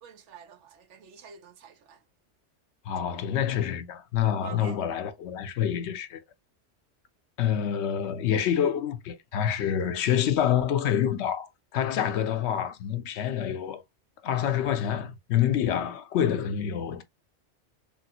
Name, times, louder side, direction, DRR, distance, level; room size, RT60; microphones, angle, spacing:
voice 1, 0.0-2.0 4.4-4.8, right 7 dB, 85° right, 1.0 m, -48 dB
voice 2, 2.9-6.2 7.4-13.8 14.2-17.0, left 9 dB, 75° left, 0.8 m, -27 dB
3.3 x 2.5 x 2.8 m
omnidirectional pair, 1.2 m